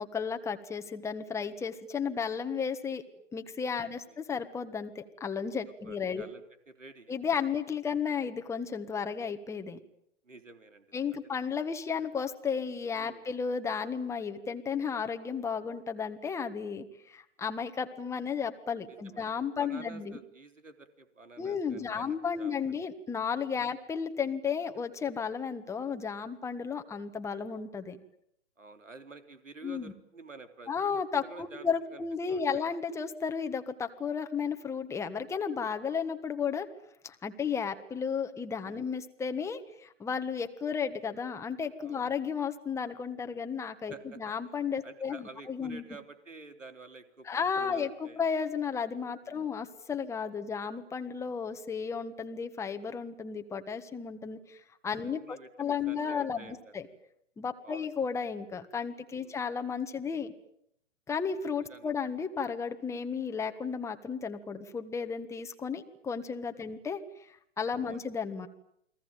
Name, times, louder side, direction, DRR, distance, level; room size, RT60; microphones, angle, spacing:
voice 1, 0.0-3.0 3.3-6.2 7.1-9.8 10.9-20.2 21.4-28.0 29.6-29.9 30.7-36.7 37.0-45.8 47.2-54.6 54.8-56.9 57.4-60.3 61.1-68.5, left 6 dB, 10° left, 7 dB, 1.6 m, -33 dB
voice 2, 3.8-4.2 5.8-7.1 10.2-10.9 13.0-13.2 18.9-19.3 19.6-22.8 23.6-23.8 28.6-30.7 31.2-32.0 32.3-32.6 38.6-38.9 41.8-42.2 43.9-44.3 44.8-47.3 47.6-48.2 49.2-49.5 55.0-56.7 57.6-57.9 59.2-59.4 61.7-61.9 66.6-66.8 67.8-68.0, right 3 dB, 90° right, 9 dB, 3.8 m, -50 dB
29.5 x 22.0 x 9.2 m, 0.75 s
figure-of-eight pair, 130°, 37 cm